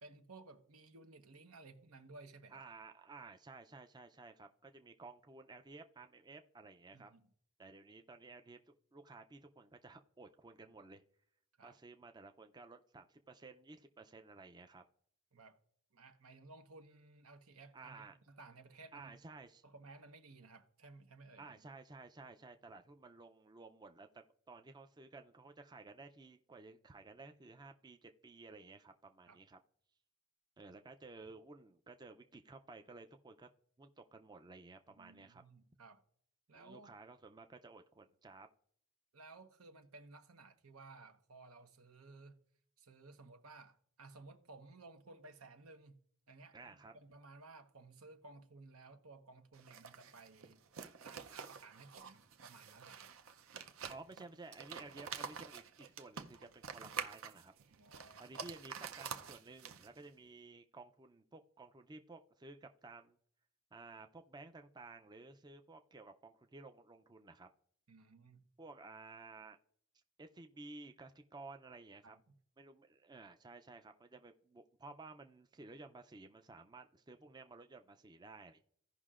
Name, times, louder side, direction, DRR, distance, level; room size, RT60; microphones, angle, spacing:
voice 1, 0.0-2.6 6.9-7.3 11.6-11.8 15.3-15.6 15.9-19.1 19.6-21.4 29.3-29.4 35.0-36.0 36.5-36.9 39.1-42.4 42.8-46.0 46.3-50.6 51.0-53.1 57.7-58.2 67.9-68.4 72.0-72.2, right 3 dB, 85° right, 1.0 m, -57 dB
voice 2, 2.5-7.1 7.6-11.0 11.6-14.8 17.7-18.2 18.9-19.6 21.4-29.6 30.6-33.5 33.8-35.4 36.5-38.5 46.5-46.9 53.9-57.5 58.2-63.2 63.7-67.5 68.6-69.6 70.2-72.2 72.6-78.6, right 3 dB, 20° right, 0.4 m, -54 dB
sound 1, 49.5-60.1, right 7 dB, 70° right, 0.6 m, -48 dB
16.0 x 5.5 x 2.4 m
head